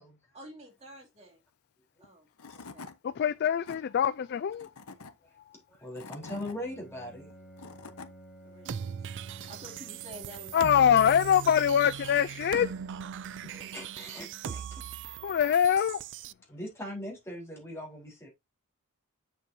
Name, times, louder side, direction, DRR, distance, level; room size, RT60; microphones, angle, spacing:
voice 1, 0.3-1.4 2.0-2.3 2.5-2.9 8.4-11.4, right 1 dB, 30° right, 2.6 m, -50 dB
Tools / Wood, 2.0-2.1 2.4-3.0 3.4-3.8 4.5-5.1 5.7-6.6 7.3-8.1, left 4 dB, 75° left, 1.0 m, -45 dB
voice 2, 3.0-4.7 10.5-12.7 15.2-16.0, left 9 dB, 50° left, 0.3 m, -24 dB
voice 3, 5.7-7.3 13.4-14.8 16.5-18.3, left 1 dB, 10° left, 3.8 m, -41 dB
Bowed string instrument, 6.2-11.3, right 1 dB, 5° right, 5.8 m, -52 dB
sound 1, 8.6-16.3, right 7 dB, 55° right, 0.4 m, -39 dB
7.6 x 7.2 x 2.7 m
head